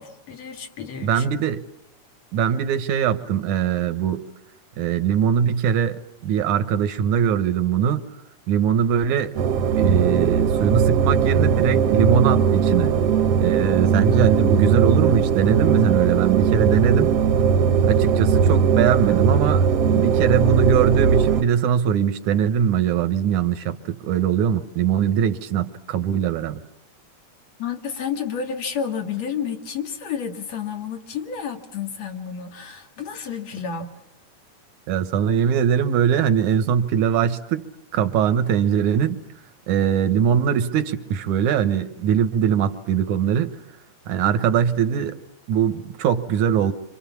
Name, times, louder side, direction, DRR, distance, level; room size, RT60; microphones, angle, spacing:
voice 1, 0.0-1.2 27.6-33.9, left 7 dB, 60° left, 4 dB, 3.1 m, -30 dB
voice 2, 1.0-1.6 2.3-4.2 4.8-8.0 8.5-9.3 9.7-12.9 13.4-17.1 17.9-26.6 34.9-37.6 37.9-39.2 39.7-43.6 44.1-45.2 45.5-46.7, right 8 dB, 80° right, 11 dB, 2.6 m, -21 dB
sound 1, 9.4-21.4, right 7 dB, 60° right, 2.0 m, -19 dB
27.5 x 26.5 x 7.2 m, 0.80 s
omnidirectional pair, 3.5 m